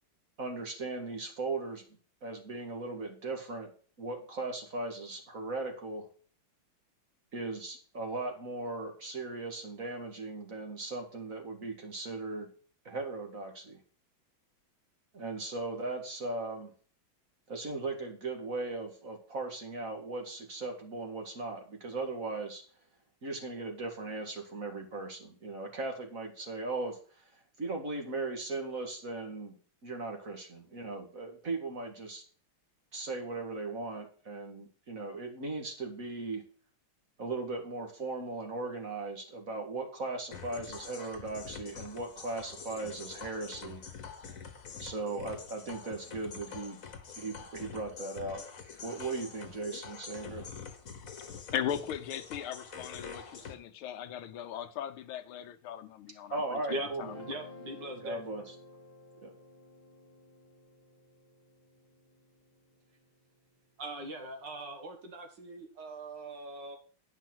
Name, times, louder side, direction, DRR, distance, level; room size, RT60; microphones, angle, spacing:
voice 1, 0.4-1.9 2.2-3.7 4.0-6.1 7.3-12.5 12.8-13.8 15.1-16.7 17.5-22.6 23.2-27.2 27.6-29.6 29.8-32.2 32.9-36.4 37.2-43.8 44.8-46.8 47.2-48.4 48.8-50.5 56.3-57.2 58.0-58.5 59.2-59.3, right 3 dB, 40° right, 2.2 m, -38 dB
sound 1, 40.3-53.5, left 6 dB, 45° left, 1.5 m, -46 dB
voice 2, 51.5-56.6 57.0-57.1, left 10 dB, 80° left, 1.6 m, -38 dB
Guitar, 56.9-63.2, left 2 dB, 25° left, 1.0 m, -53 dB
voice 3, 57.3-58.2 63.8-66.8, right 1 dB, 60° right, 2.3 m, -40 dB
10.0 x 5.5 x 6.1 m
omnidirectional pair, 2.3 m